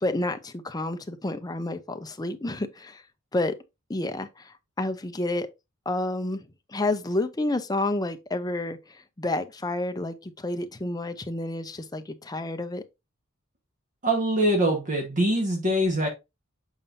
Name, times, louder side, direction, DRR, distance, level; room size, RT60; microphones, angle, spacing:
voice 1, 0.0-3.0 3.3-3.5 3.9-5.5 5.9-12.8, left 2 dB, 20° left, 0.7 m, -30 dB
voice 2, 14.0-16.1, right 1 dB, 40° right, 1.4 m, -23 dB
7.3 x 5.4 x 2.6 m
head